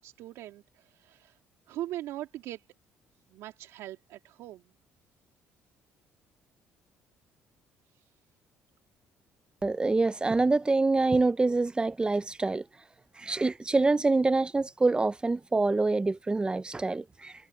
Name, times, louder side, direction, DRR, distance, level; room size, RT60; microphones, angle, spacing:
voice 1, 0.0-1.4 1.7-2.6 3.3-4.7 7.9-8.1, right 14 dB, 80° right, 3.1 m, -41 dB
voice 2, 9.6-12.6 13.2-17.3, right 3 dB, 20° right, 0.7 m, -26 dB
supercardioid pair, 80°, 5 cm